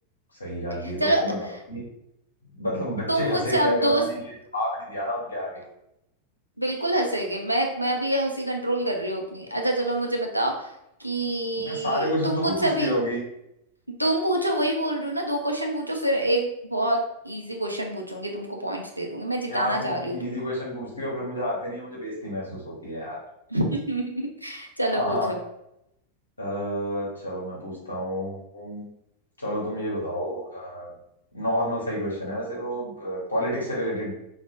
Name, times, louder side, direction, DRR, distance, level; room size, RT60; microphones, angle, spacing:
voice 1, 0.4-1.8 2.5-4.1 4.5-5.6 11.5-13.2 19.5-23.2 24.9-25.3 26.4-28.8 29.4-30.9 31.3-34.1, equal, 80° left, -5 dB, 0.8 m, -29 dB
voice 2, 3.1-4.0 6.6-10.7 11.0-13.0 14.0-20.4 23.5-25.4, right 1 dB, 90° right, 1 dB, 0.4 m, -26 dB
2.3 x 2.0 x 2.7 m, 0.82 s
figure-of-eight pair, 90°, 0 cm